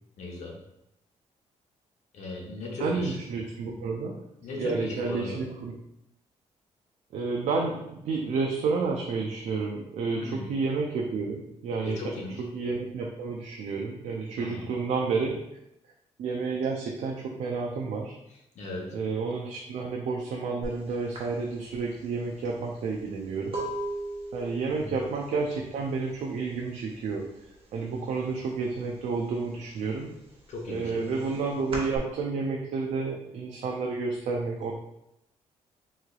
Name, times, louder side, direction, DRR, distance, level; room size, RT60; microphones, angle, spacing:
voice 1, 0.2-0.6 2.1-3.2 4.4-5.4 10.2-10.5 11.8-12.4 14.4-14.7 18.3-19.0 24.7-25.0 30.5-31.0, left 2 dB, 70° left, -1 dB, 0.9 m, -37 dB
voice 2, 2.8-4.3 4.5-5.7 7.1-12.0 12.4-15.4 16.2-18.2 18.9-23.6 24.3-27.3 27.7-30.1 30.7-34.7, right 4 dB, 75° right, 0 dB, 0.4 m, -30 dB
sound 1, 20.6-20.8 21.1-26.8 27.1-27.6 27.9-29.0 29.4-32.0, right 1 dB, 50° right, 1.1 m, -38 dB
3.7 x 3.1 x 2.3 m, 0.83 s
cardioid pair, 110°, 12 cm